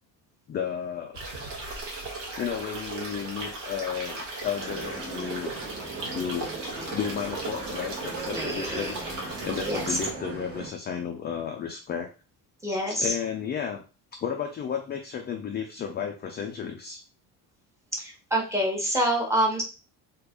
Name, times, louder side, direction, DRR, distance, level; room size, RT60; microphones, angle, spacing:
voice 1, 0.5-1.2 2.4-5.5 6.1-6.5 6.9-9.0 9.4-12.1 12.9-13.8 14.2-17.0, left 7 dB, 25° left, 2 dB, 0.3 m, -33 dB
sound 1, 1.1-10.1, right 3 dB, 85° right, 1.4 m, -36 dB
sound 2, 4.5-10.7, right 3 dB, 35° right, 1.0 m, -39 dB
voice 2, 8.3-9.0 9.7-10.0 12.6-13.1 17.9-19.6, right 1 dB, 5° right, -2 dB, 0.9 m, -27 dB
2.8 x 2.4 x 3.5 m, 0.33 s
cardioid pair, 135°, 41 cm